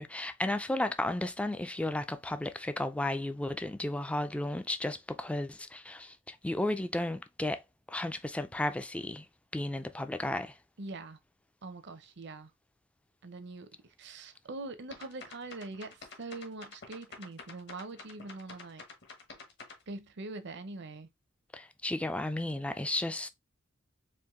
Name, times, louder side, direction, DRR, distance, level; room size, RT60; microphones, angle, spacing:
voice 1, 0.0-7.6 7.9-9.3 9.5-10.6 21.5-23.3, left 1 dB, 5° left, 0.3 m, -33 dB
voice 2, 10.8-11.2 11.6-12.5 13.2-13.7 14.0-18.8 19.9-21.1, right 3 dB, 60° right, 0.7 m, -43 dB
sound 1, 14.9-19.8, left 4 dB, 60° left, 1.2 m, -48 dB
4.5 x 2.6 x 3.6 m
head